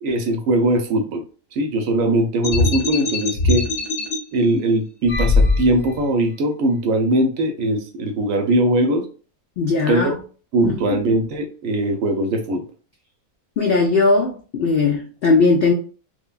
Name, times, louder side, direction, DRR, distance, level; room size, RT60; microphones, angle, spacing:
voice 1, 0.0-1.2 1.5-3.7 4.3-9.1 9.9-10.2 10.5-12.6, right 1 dB, 70° right, 4 dB, 1.0 m, -20 dB
sound 1, 2.4-4.2 5.1-6.0, left 3 dB, 55° left, 0.8 m, -20 dB
voice 2, 9.6-10.2 10.6-11.0 13.6-15.7, left 3 dB, 80° left, 1 dB, 0.5 m, -18 dB
3.1 x 2.1 x 2.3 m, 0.38 s
omnidirectional pair, 1.6 m